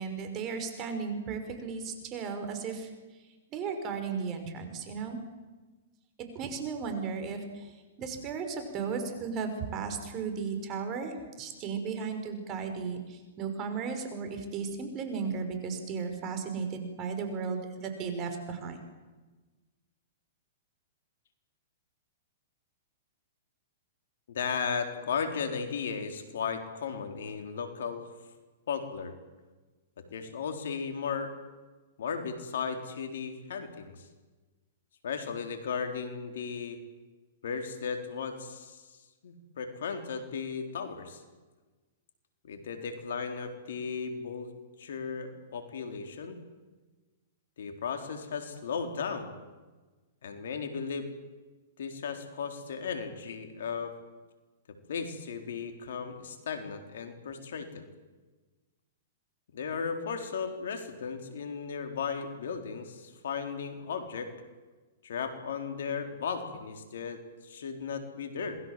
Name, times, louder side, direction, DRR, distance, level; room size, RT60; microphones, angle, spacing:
voice 1, 0.0-2.9 3.5-5.2 6.3-7.7 8.0-18.8, right 5 dB, 35° right, 6 dB, 5.8 m, -35 dB
voice 2, 24.3-28.1 28.7-29.1 30.1-31.3 32.0-34.0 35.0-36.8 37.4-39.0 39.2-41.2 42.4-44.5 44.8-46.4 47.6-49.3 50.2-51.1 51.8-53.9 54.7-57.9 59.5-64.3 65.0-68.6, left 6 dB, 75° left, 6 dB, 4.0 m, -35 dB
27.0 x 21.0 x 7.7 m, 1.3 s
hypercardioid pair, 125°, 0 cm